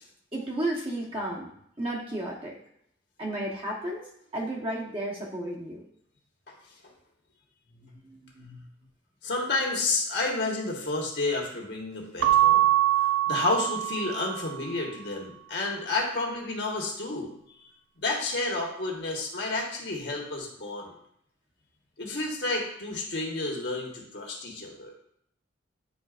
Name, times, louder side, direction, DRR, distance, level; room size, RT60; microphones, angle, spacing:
voice 1, 0.3-1.5 1.8-2.5 3.2-4.0 4.3-5.8 7.7-8.6, right 1 dB, 30° right, -3 dB, 1.2 m, -33 dB
voice 2, 9.2-12.7 13.3-17.3 18.0-20.9 22.0-24.9, left 2 dB, 60° left, -1 dB, 1.4 m, -30 dB
Keyboard (musical) / Bell, 12.2-14.6, right 13 dB, 80° right, 0.4 m, -23 dB
9.4 x 4.0 x 2.5 m, 0.70 s
head